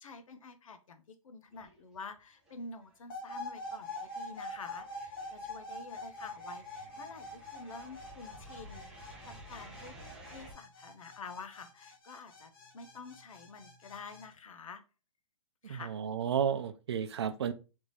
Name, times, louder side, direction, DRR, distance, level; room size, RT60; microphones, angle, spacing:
voice 1, 0.0-9.9 10.2-14.8 15.6-15.9, left 4 dB, 85° left, 0.9 m, -48 dB
sound 1, 1.5-2.2 2.5-10.5, right 1 dB, 5° right, 0.3 m, -54 dB
sound 2, 3.1-14.3, left 1 dB, 45° left, 1.0 m, -45 dB
voice 2, 15.6-17.5, right 8 dB, 55° right, 0.5 m, -32 dB
3.6 x 3.3 x 4.0 m
hypercardioid pair, 170°, 17 cm